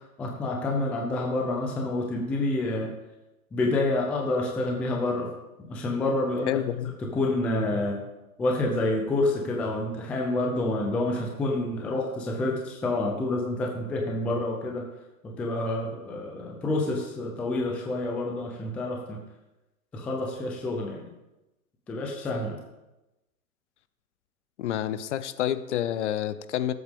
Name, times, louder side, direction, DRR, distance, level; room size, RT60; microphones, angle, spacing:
voice 1, 0.0-2.9 3.5-5.3 5.6-6.6 7.1-8.0 8.4-14.8 15.2-19.2 19.9-21.1 21.9-22.6, left 2 dB, 5° left, 0 dB, 0.4 m, -28 dB
voice 2, 6.5-6.9 24.6-26.7, left 11 dB, 50° left, 13 dB, 0.8 m, -28 dB
18.0 x 8.0 x 3.6 m, 1.0 s
hypercardioid pair, 135°, 44 cm